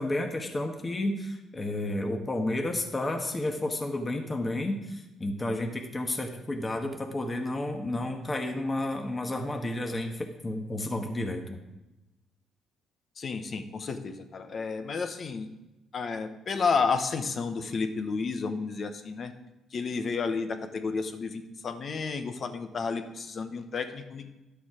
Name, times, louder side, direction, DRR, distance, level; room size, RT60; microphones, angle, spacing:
voice 1, 0.0-11.6, left 1 dB, 25° left, 3 dB, 1.3 m, -31 dB
voice 2, 13.2-15.5 15.9-19.3 19.7-24.3, left 4 dB, 45° left, 8 dB, 1.0 m, -31 dB
11.5 x 7.0 x 5.0 m, 1.0 s
cardioid pair, 90°, 0 cm